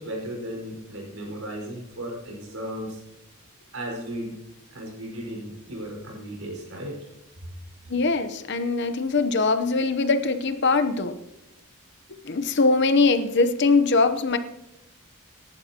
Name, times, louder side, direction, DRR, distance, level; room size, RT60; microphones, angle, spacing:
voice 1, 0.0-3.0 3.7-4.3 4.7-7.0 7.4-7.5, equal, 75° right, 0 dB, 4.9 m, -35 dB
voice 2, 7.9-11.2 12.2-14.4, left 3 dB, 50° left, 10 dB, 0.8 m, -22 dB
26.0 x 11.0 x 2.9 m, 0.92 s
head